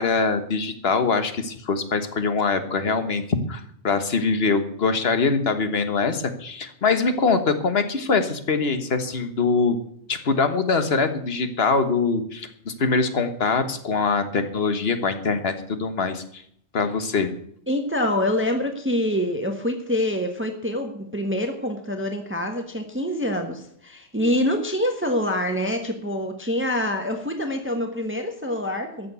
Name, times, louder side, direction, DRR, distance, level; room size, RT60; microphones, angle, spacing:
voice 1, 0.0-9.8 10.1-16.4 16.7-17.3, left 4 dB, 50° left, 9 dB, 1.5 m, -23 dB
voice 2, 17.7-29.1, left 1 dB, 10° right, 5 dB, 1.2 m, -26 dB
14.0 x 7.1 x 8.1 m, 0.68 s
omnidirectional pair, 1.3 m